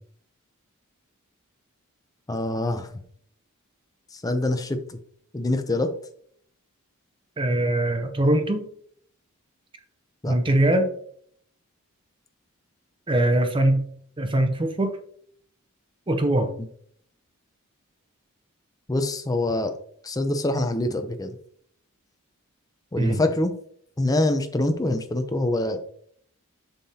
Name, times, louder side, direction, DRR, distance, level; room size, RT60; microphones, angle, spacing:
voice 1, 2.3-2.9 4.1-5.0 5.3-5.9 10.2-10.4 18.9-19.7 20.0-21.4 22.9-23.5 24.0-25.8, left 2 dB, 15° left, 7 dB, 0.6 m, -25 dB
voice 2, 7.4-8.7 10.2-10.9 13.1-13.9 14.2-14.9 16.1-16.5 23.0-23.2, right 1 dB, 25° right, 7 dB, 0.7 m, -22 dB
7.1 x 5.6 x 2.8 m, 0.62 s
head